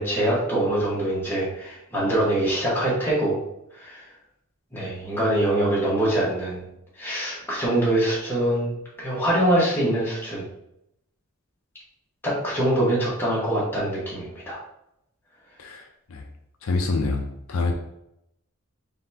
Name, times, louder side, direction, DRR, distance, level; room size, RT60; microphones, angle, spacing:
voice 1, 0.0-3.4 3.8-4.0 4.7-6.6 7.0-8.7 9.0-10.4 12.2-14.6, right 1 dB, 10° left, -7 dB, 1.4 m, -24 dB
voice 2, 15.6-16.2 16.6-17.2 17.5-17.7, left 3 dB, 70° left, 2 dB, 0.5 m, -26 dB
4.0 x 3.4 x 2.8 m, 0.81 s
head